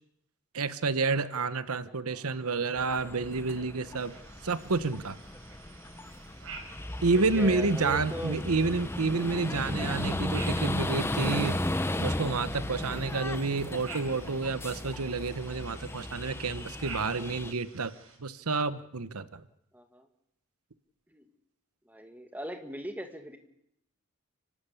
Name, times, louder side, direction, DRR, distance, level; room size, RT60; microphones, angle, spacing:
voice 1, 0.5-4.1 4.4-5.2 7.0-11.6 12.0-17.9 18.2-19.4, right 3 dB, 90° right, 14 dB, 1.0 m, -29 dB
voice 2, 1.9-2.2 7.1-8.4 12.7-13.0 19.7-20.1 21.1-21.3 21.9-23.4, equal, 10° right, 5 dB, 2.0 m, -40 dB
sound 1, 2.8-17.5, left 1 dB, 10° left, 0.8 m, -35 dB
sound 2, 3.9-18.2, right 4 dB, 70° right, 4.9 m, -50 dB
30.0 x 12.5 x 8.5 m, 0.78 s
head